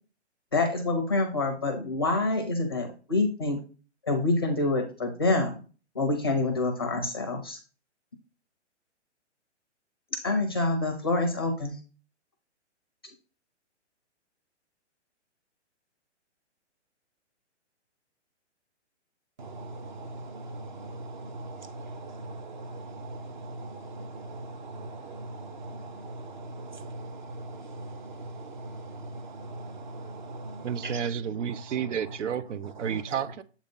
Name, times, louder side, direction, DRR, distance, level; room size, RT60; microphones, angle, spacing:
voice 1, 0.5-3.6 4.1-5.6 5.9-7.6 10.1-11.8, left 2 dB, 20° left, 0.5 m, -27 dB
voice 2, 19.4-31.0 32.9-33.0, right 2 dB, 40° right, 0.7 m, -40 dB
voice 3, 30.6-33.4, right 8 dB, 80° right, 0.6 m, -31 dB
7.2 x 2.7 x 5.3 m
hypercardioid pair, 170°, 36 cm